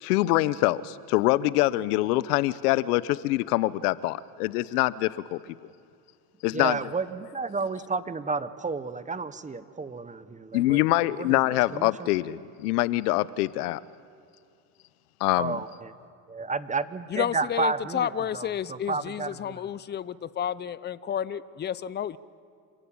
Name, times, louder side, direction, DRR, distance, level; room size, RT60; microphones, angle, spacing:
voice 1, 0.0-5.4 6.4-6.8 10.5-13.8 15.2-15.6, left 17 dB, 80° left, 18 dB, 0.9 m, -24 dB
voice 2, 6.5-12.1 15.4-15.9 16.3-19.6, right 4 dB, 15° right, 13 dB, 1.1 m, -32 dB
voice 3, 17.1-22.2, left 9 dB, 25° left, 17 dB, 0.7 m, -31 dB
27.0 x 17.0 x 8.8 m, 2.4 s
supercardioid pair, 95°, 45 cm